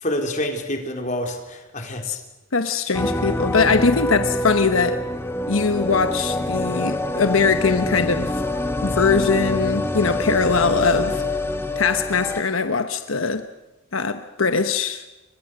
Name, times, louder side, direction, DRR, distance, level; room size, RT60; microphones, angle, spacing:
voice 1, 0.0-2.2, left 1 dB, 40° left, 4.3 m, -27 dB
voice 2, 2.5-5.0 5.5-8.4 8.8-11.2 11.8-13.5 13.9-15.0, left 4 dB, 80° left, 1.1 m, -21 dB
sound 1, 2.9-12.4, left 1 dB, 10° left, 1.6 m, -25 dB
29.5 x 24.5 x 6.5 m
head